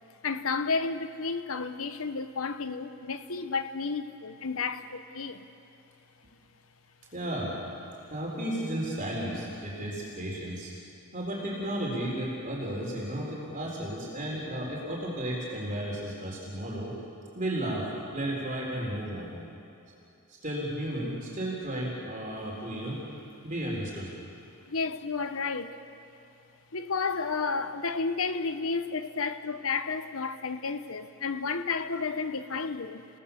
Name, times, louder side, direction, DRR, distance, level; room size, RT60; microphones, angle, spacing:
voice 1, 0.2-5.4 24.7-25.8 26.7-33.1, left 4 dB, 70° left, 1.0 m, -32 dB
voice 2, 7.1-7.6 8.1-10.7 11.1-16.9 17.3-17.9 18.1-19.3 20.3-23.0 23.4-24.1, right 1 dB, 35° right, 3.9 m, -33 dB
30.0 x 18.0 x 7.0 m
head